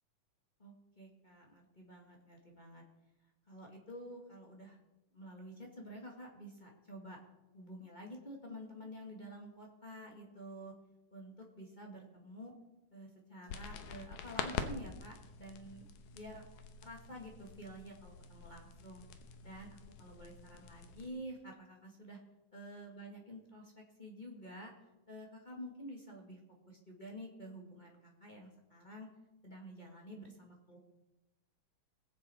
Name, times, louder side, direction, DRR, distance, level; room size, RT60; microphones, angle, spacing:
voice 1, 0.6-2.8 3.5-4.8 5.1-7.2 7.5-10.7 11.1-12.5 12.9-15.8 16.1-16.4 16.8-19.0 19.4-22.2 22.5-24.7 25.1-26.4 26.7-29.1 29.4-30.8, equal, 20° left, -1 dB, 1.2 m, -50 dB
sound 1, 13.5-21.1, left 7 dB, 75° left, 2.2 m, -46 dB
20.5 x 7.5 x 4.4 m, 0.96 s
omnidirectional pair, 3.7 m